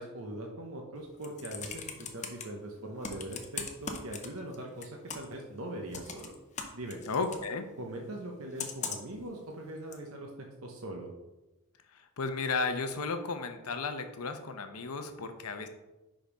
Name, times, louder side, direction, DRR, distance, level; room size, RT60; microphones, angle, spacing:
voice 1, 0.0-6.3 6.7-7.0 7.8-11.1, right 1 dB, 65° right, 1 dB, 0.9 m, -41 dB
Computer keyboard, 1.0-2.4 3.0-4.6 4.8-5.4 5.9-7.5 8.6-9.2 9.9-10.0, left 6 dB, 30° left, 0.7 m, -39 dB
voice 2, 7.1-7.7 12.2-15.7, left 4 dB, 85° left, 7 dB, 0.8 m, -34 dB
5.2 x 5.0 x 5.2 m, 1.0 s
head